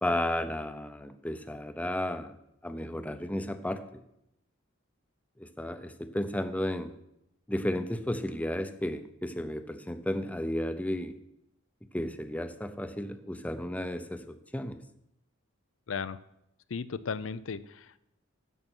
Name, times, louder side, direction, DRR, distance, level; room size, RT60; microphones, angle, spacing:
voice 1, 0.0-2.3 2.6-4.0 5.4-6.9 7.5-11.1 11.9-14.8, left 1 dB, 5° left, 8 dB, 0.7 m, -33 dB
voice 2, 15.9-16.2 16.7-18.0, left 5 dB, 70° left, 15 dB, 0.5 m, -35 dB
11.0 x 6.8 x 6.1 m, 0.80 s
head